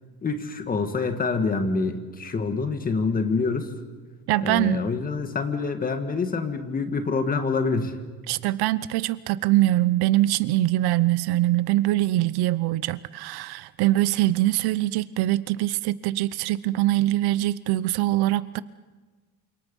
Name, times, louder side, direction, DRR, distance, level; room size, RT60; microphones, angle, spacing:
voice 1, 0.2-3.7 4.4-8.0, left 4 dB, 20° left, 7 dB, 1.8 m, -26 dB
voice 2, 4.3-4.8 8.3-18.6, right 16 dB, 75° right, 17 dB, 0.8 m, -23 dB
28.5 x 26.5 x 5.4 m, 1.4 s
cardioid pair, 175°, 39 cm